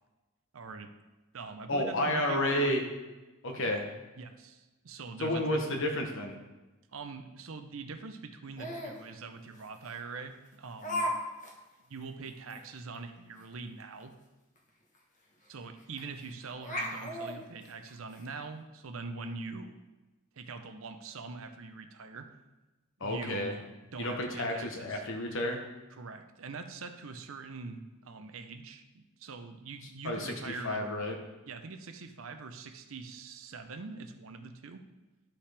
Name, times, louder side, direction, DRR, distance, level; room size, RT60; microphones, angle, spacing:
voice 1, 0.5-0.9 1.3-2.8 4.2-5.6 6.9-11.1 11.9-14.1 15.5-19.8 20.4-22.3 23.0-23.6 23.9-25.0 26.0-30.8 31.5-34.8, right 4 dB, 65° right, 8 dB, 0.7 m, -43 dB
voice 2, 1.7-2.8 3.4-3.9 5.2-6.4 23.0-23.6 24.0-25.6 30.0-31.2, left 1 dB, 65° left, 3 dB, 1.1 m, -31 dB
Laughter, 8.6-9.0 9.8-9.9 10.8-11.1 11.4-11.5 12.0-12.1 12.5-12.6 14.6-14.7 14.9-15.0 16.0-16.2 16.6-18.2, equal, 35° left, 1.2 m, -35 dB
11.5 x 5.7 x 3.4 m, 1.1 s
head